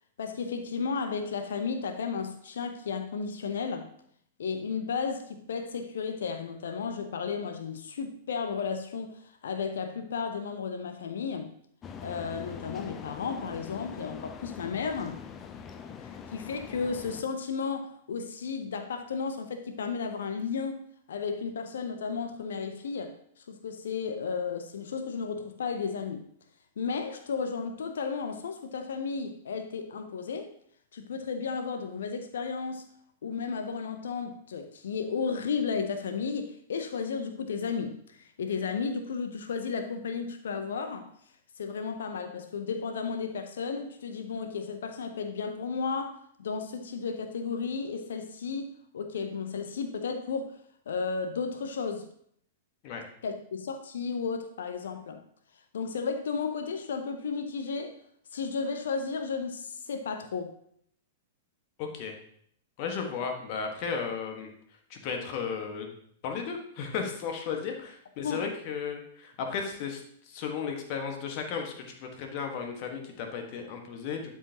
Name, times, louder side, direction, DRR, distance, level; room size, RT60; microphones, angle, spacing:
voice 1, 0.2-3.9 4.4-11.5 12.0-15.2 16.0-26.3 26.8-30.5 30.9-32.9 33.2-41.1 41.6-50.6 50.9-52.1 53.2-55.2 55.7-58.0 58.3-60.5 68.2-68.4, left 5 dB, 65° left, 0.7 m, -33 dB
sound 1, 11.8-17.2, left 6 dB, 25° left, 0.6 m, -43 dB
voice 2, 61.8-62.2 62.8-64.5 64.9-65.9 66.2-74.3, left 6 dB, 45° left, 1.4 m, -35 dB
11.5 x 4.9 x 2.9 m
figure-of-eight pair, 100°, 0 cm